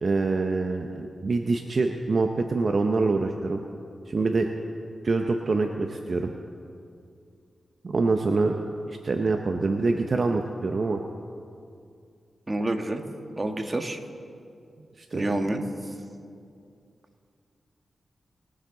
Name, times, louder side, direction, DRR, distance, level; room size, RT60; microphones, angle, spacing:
voice 1, 0.0-3.6 4.1-4.5 5.0-6.3 7.8-8.6 8.9-11.0 15.0-15.3, right 3 dB, 60° right, 4 dB, 0.7 m, -25 dB
voice 2, 12.5-13.0 13.4-14.0 15.1-15.6, right 1 dB, 30° right, 5 dB, 1.5 m, -28 dB
21.5 x 7.4 x 3.9 m, 2.4 s
supercardioid pair, 40°, 0 cm